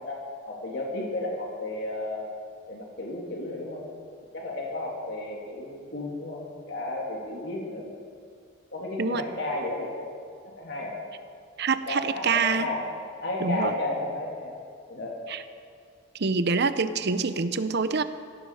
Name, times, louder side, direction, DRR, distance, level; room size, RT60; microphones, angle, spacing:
voice 1, 0.0-2.3 2.7-3.8 4.3-6.4 6.7-7.9 8.7-10.1 10.4-11.0 11.9-12.9 13.2-14.6 14.9-15.2, left 2 dB, 60° left, -2 dB, 3.0 m, -33 dB
voice 2, 11.6-12.7 13.4-13.7 15.3-15.4 16.2-18.0, right 4 dB, 60° right, 12 dB, 0.8 m, -26 dB
17.5 x 16.5 x 4.9 m, 2.2 s
head